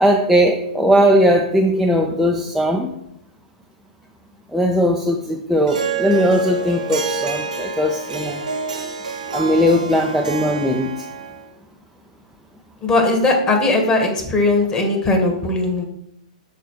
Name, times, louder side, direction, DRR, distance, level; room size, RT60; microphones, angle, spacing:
voice 1, 0.0-2.9 4.5-8.4 9.3-10.9, equal, ahead, 0 dB, 0.5 m, -18 dB
Harp, 5.7-11.5, right 4 dB, 75° right, 1.3 m, -27 dB
voice 2, 12.8-15.8, left 2 dB, 20° left, 3 dB, 1.5 m, -18 dB
6.6 x 4.4 x 4.6 m, 0.77 s
figure-of-eight pair, 110°, 4 cm